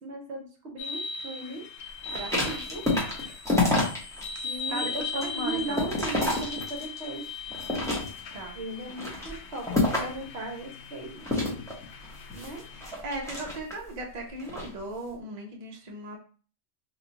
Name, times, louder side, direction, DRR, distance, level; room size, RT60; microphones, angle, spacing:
voice 1, 0.0-1.7 2.1-2.8 4.4-7.4 8.6-11.2 12.3-12.6, right 2 dB, 60° right, 2 dB, 1.0 m, -37 dB
sound 1, 0.8-12.9, left 5 dB, 85° left, 1.0 m, -39 dB
sound 2, 2.0-4.3 4.7-7.0 7.5-8.4 8.9-10.2 11.2-13.9 14.4-14.7, left 2 dB, 5° left, 0.8 m, -28 dB
voice 2, 4.7-5.9 8.3-8.6 9.0-9.2 9.4-9.5 12.7-16.2, right 1 dB, 40° right, 0 dB, 0.6 m, -37 dB
3.0 x 2.3 x 3.9 m, 0.40 s
omnidirectional pair, 1.3 m